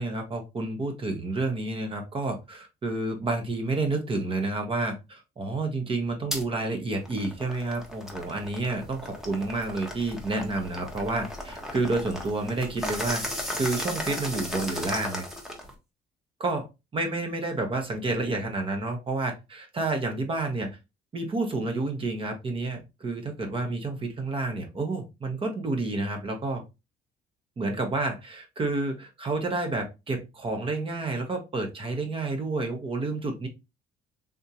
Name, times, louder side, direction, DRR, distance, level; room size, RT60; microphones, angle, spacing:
voice 1, 0.0-13.2 13.6-15.3 16.4-16.7 16.9-20.8 21.1-26.6 27.6-33.5, right 2 dB, 30° right, 4 dB, 0.9 m, -30 dB
sound 1, 6.3-6.4 6.9-15.7, left 1 dB, ahead, 0.9 m, -36 dB
3.6 x 2.7 x 2.8 m, 0.25 s
cardioid pair, 110°, 17 cm